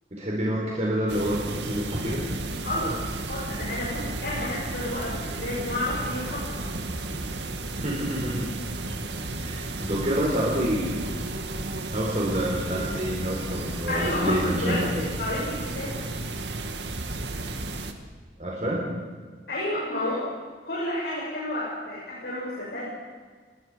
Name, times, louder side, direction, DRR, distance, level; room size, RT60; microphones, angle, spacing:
voice 1, 0.1-2.2 7.8-8.5 9.4-11.1 11.9-15.0 18.4-18.8, equal, 40° right, -4 dB, 4.5 m, -27 dB
sound 1, 1.1-17.9, right 2 dB, 85° right, 2.1 m, -33 dB
voice 2, 2.6-6.6 13.9-16.0 19.5-20.2 20.6-22.9, left 1 dB, 80° left, -7 dB, 7.3 m, -31 dB
29.5 x 20.0 x 5.2 m, 1.5 s
head